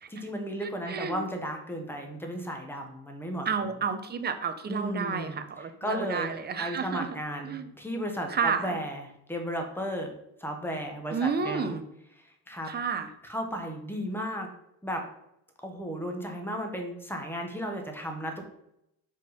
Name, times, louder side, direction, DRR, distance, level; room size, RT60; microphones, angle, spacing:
voice 1, 0.1-3.5 4.7-5.4 5.8-6.3 6.6-9.0 9.3-10.1 10.4-11.8 12.5-12.7 13.2-14.5 14.8-15.0 15.6-18.4, equal, 5° left, 3 dB, 1.0 m, -34 dB
voice 2, 0.6-1.2 3.5-7.2 7.4-7.7 8.3-8.8 11.1-11.8 12.7-13.1, right 6 dB, 25° right, 9 dB, 0.6 m, -31 dB
5.2 x 3.7 x 5.6 m, 0.79 s
cardioid pair, 125°, 37 cm